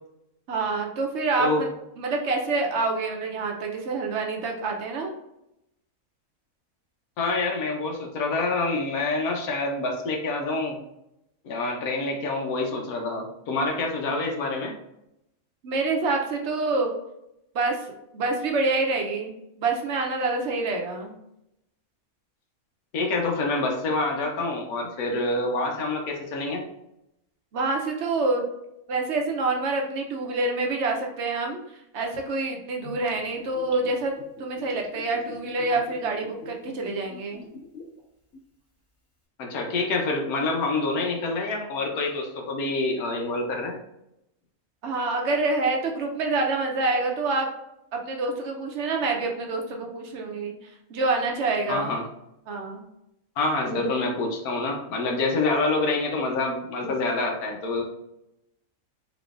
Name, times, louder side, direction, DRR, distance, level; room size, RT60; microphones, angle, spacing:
voice 1, 0.5-1.7 2.0-5.1 15.6-16.9 17.5-21.1 27.5-28.4 28.9-34.1 34.4-37.5 44.8-47.5 47.9-50.5 50.9-51.9 52.5-52.8 57.8-57.9, right 3 dB, 60° right, 2 dB, 1.0 m, -27 dB
voice 2, 7.2-10.8 11.4-14.7 22.9-26.6 39.4-43.8 51.7-52.0 53.4-57.8, left 3 dB, 90° left, 1 dB, 1.3 m, -27 dB
Gurgling / Bathtub (filling or washing), 32.8-38.0 38.3-38.4, left 4 dB, 10° left, 0.9 m, -44 dB
3.9 x 3.7 x 2.4 m, 0.84 s
omnidirectional pair, 1.5 m